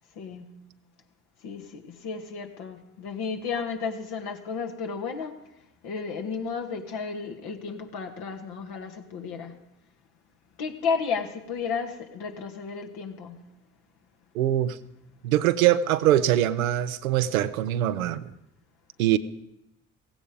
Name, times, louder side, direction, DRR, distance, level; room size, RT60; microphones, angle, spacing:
voice 1, 0.2-0.6 1.4-5.4 5.8-9.6 10.6-13.4, left 5 dB, 70° left, 1.8 m, -33 dB
voice 2, 14.3-14.8 15.2-18.3 19.0-19.2, right 12 dB, 90° right, 0.6 m, -23 dB
16.0 x 16.0 x 5.1 m
hypercardioid pair, 45°, 40 cm